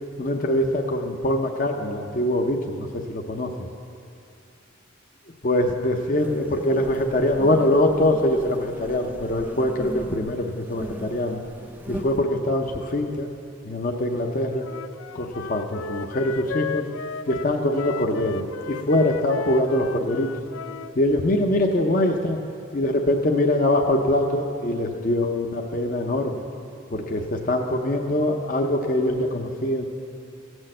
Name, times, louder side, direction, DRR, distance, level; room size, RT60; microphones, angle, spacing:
voice 1, 0.2-3.5 5.4-11.4 11.9-13.3 13.6-14.7 15.1-16.9 17.3-20.3 21.0-22.4 22.7-26.4 26.9-29.8, left 1 dB, 40° left, 3 dB, 0.7 m, -23 dB
sound 1, 6.2-12.2, right 1 dB, 10° right, 0.4 m, -39 dB
Wind instrument woodwind instrument, 14.6-20.9, left 6 dB, 80° left, 0.4 m, -35 dB
16.0 x 6.3 x 7.7 m, 2.5 s
head